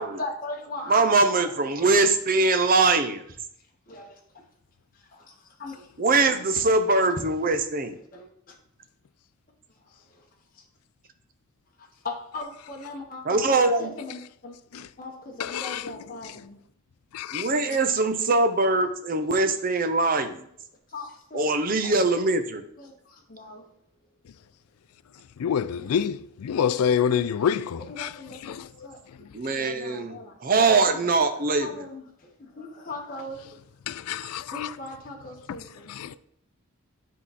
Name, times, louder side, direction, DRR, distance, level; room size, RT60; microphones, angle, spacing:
voice 1, 0.0-2.0 3.6-4.4 4.9-7.0 7.5-7.6 7.9-8.6 9.7-10.7 11.8-16.6 17.6-17.8 20.9-21.9 22.8-23.8 25.8-26.0 27.9-29.3 29.5-30.4 30.8-31.1 31.4-33.6 34.5-36.2, left 2 dB, 40° left, 1.1 m, -40 dB
voice 2, 0.9-3.2 6.0-8.0 13.3-13.9 17.3-20.5 21.3-22.6 29.3-30.1 30.4-31.7, right 3 dB, 40° right, 0.6 m, -22 dB
voice 3, 15.4-15.9 17.1-17.5 25.4-28.1 28.4-28.7 29.1-29.3 33.9-34.7 35.9-36.2, left 8 dB, 90° left, 0.4 m, -27 dB
9.6 x 3.7 x 4.1 m
head